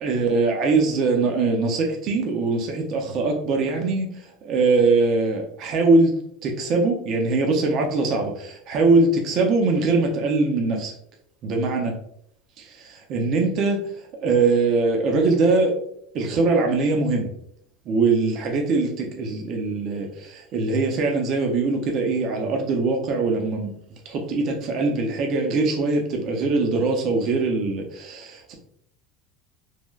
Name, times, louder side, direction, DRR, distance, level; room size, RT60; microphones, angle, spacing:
voice 1, 0.0-6.1 6.4-10.9 11.4-12.0 12.6-13.8 14.2-15.7 16.1-17.3 17.9-23.7 24.1-28.5, right 3 dB, 40° right, 2 dB, 0.4 m, -22 dB
3.1 x 2.1 x 2.2 m, 0.69 s
cardioid pair, 175°, 0 cm